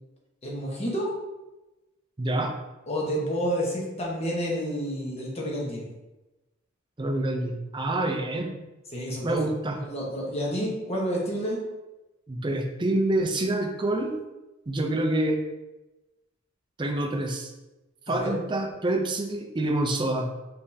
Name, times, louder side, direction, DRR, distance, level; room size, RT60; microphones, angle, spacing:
voice 1, 0.4-1.1 2.9-5.8 8.9-9.4 9.8-11.6 18.1-18.4, equal, 30° left, -3 dB, 1.0 m, -29 dB
voice 2, 2.2-2.5 7.0-8.5 9.2-9.8 12.3-14.1 14.7-15.4 16.8-17.5 18.1-20.3, right 1 dB, 25° right, 3 dB, 0.5 m, -27 dB
5.1 x 3.4 x 2.7 m, 1.0 s
head